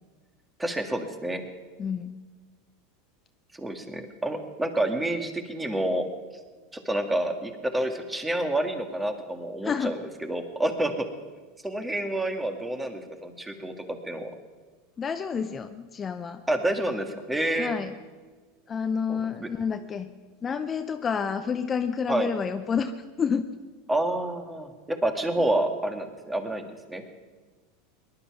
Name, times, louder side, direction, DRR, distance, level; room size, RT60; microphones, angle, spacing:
voice 1, 0.6-1.4 3.5-6.1 6.9-10.9 11.6-14.3 16.5-17.8 19.1-19.5 22.1-22.3 23.9-27.0, right 1 dB, 10° right, 7 dB, 1.8 m, -28 dB
voice 2, 1.8-2.2 9.6-9.9 15.0-16.4 17.6-17.9 18.7-20.1 20.4-23.5, left 6 dB, 25° left, 8 dB, 0.7 m, -29 dB
19.0 x 11.5 x 5.9 m, 1.4 s
supercardioid pair, 115°, 0 cm